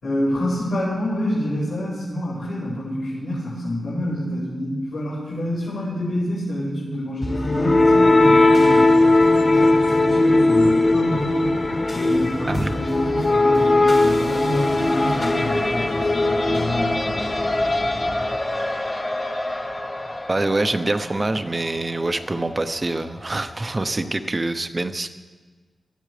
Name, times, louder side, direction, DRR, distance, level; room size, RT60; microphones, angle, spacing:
voice 1, 0.0-11.6 11.9-17.4, equal, 80° left, -9 dB, 5.7 m, -27 dB
sound 1, 7.2-19.1, left 2 dB, 50° left, 2.3 m, -19 dB
Race car auto racing, 11.5-24.1, left 1 dB, 25° left, 0.9 m, -30 dB
voice 2, 20.3-25.1, right 2 dB, 35° right, 9 dB, 0.8 m, -25 dB
19.5 x 13.5 x 3.4 m, 1.4 s
cardioid pair, 70°, 0 cm